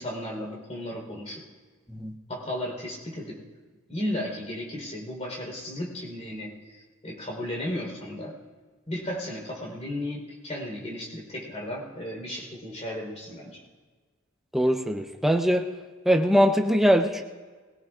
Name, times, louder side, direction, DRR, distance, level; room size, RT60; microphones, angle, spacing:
voice 1, 0.0-1.4 2.3-3.4 3.9-8.3 8.9-13.6, left 1 dB, 35° left, -1 dB, 4.0 m, -34 dB
voice 2, 14.5-15.6 16.1-17.2, equal, ahead, 3 dB, 0.7 m, -22 dB
21.5 x 17.0 x 2.5 m, 1.4 s
head